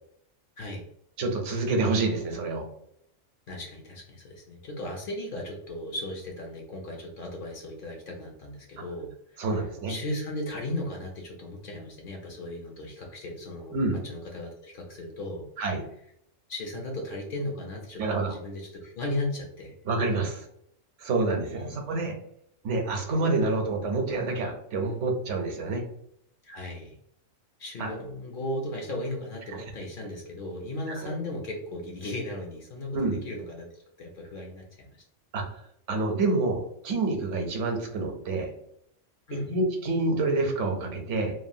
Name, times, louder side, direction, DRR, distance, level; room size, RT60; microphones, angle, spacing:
voice 1, 1.2-2.7 9.4-9.9 13.7-14.0 15.6-15.8 18.0-18.3 19.9-20.5 21.0-22.2 22.6-25.8 27.8-27.9 31.0-31.1 32.9-33.2 35.3-35.4 35.9-38.5 39.5-41.3, right 3 dB, 75° right, 3 dB, 1.0 m, -27 dB
voice 2, 3.5-9.6 9.9-15.5 16.5-19.8 21.5-22.0 26.4-27.0 27.6-33.7 34.0-34.9 39.3-39.5, left 1 dB, 55° left, 1 dB, 0.6 m, -36 dB
3.0 x 2.2 x 2.6 m, 0.70 s
omnidirectional pair, 1.3 m